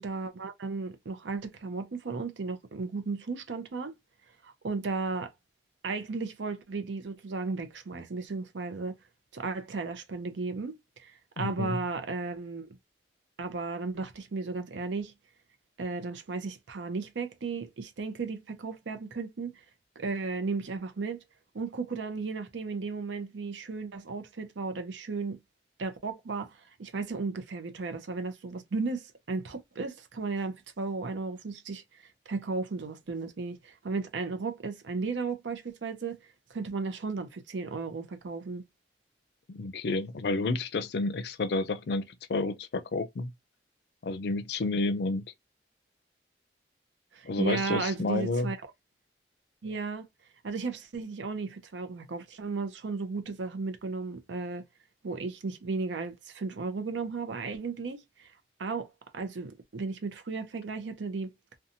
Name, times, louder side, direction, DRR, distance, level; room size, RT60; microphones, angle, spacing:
voice 1, 0.0-4.0 4.4-5.3 5.8-8.9 9.3-12.7 13.4-15.1 15.8-19.6 20.0-21.2 21.5-25.4 25.8-31.8 32.3-36.2 36.5-38.6 47.1-48.6 49.6-50.1 50.4-54.7 55.0-58.3 58.6-58.9 59.1-61.3, right 4 dB, 85° right, 0.6 m, -35 dB
voice 2, 11.4-11.8 39.5-43.3 44.0-45.2 47.2-48.5, left 3 dB, 65° left, 0.4 m, -30 dB
2.6 x 2.2 x 2.7 m
head